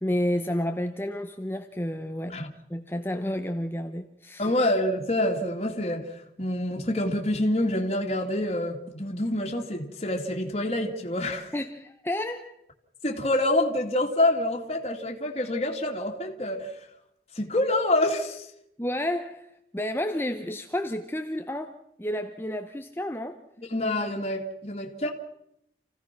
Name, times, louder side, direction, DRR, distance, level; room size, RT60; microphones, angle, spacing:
voice 1, 0.0-2.4 2.7-4.5 11.5-12.5 18.8-19.5 19.7-23.4, left 1 dB, 10° left, 0.9 m, -30 dB
voice 2, 4.4-11.5 13.0-16.7 17.3-18.5 23.6-25.1, left 1 dB, 35° left, 2.4 m, -27 dB
28.5 x 16.5 x 6.0 m
head